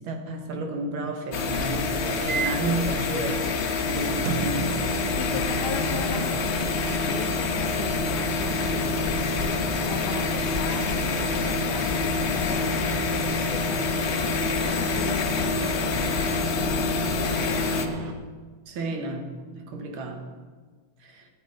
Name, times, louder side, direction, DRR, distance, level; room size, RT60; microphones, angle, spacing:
voice 1, 0.0-3.5 3.9-4.9 18.7-20.3 21.0-21.3, right 2 dB, 85° right, 2.1 m, -31 dB
sound 1, 1.3-17.9, left 5 dB, 85° left, 0.6 m, -27 dB
sound 2, 2.3-2.7 4.3-18.1, right 2 dB, 65° right, 1.5 m, -32 dB
voice 2, 4.9-13.8 14.1-16.0 16.4-17.4, left 6 dB, 65° left, 1.2 m, -39 dB
13.5 x 9.0 x 3.8 m
omnidirectional pair, 2.3 m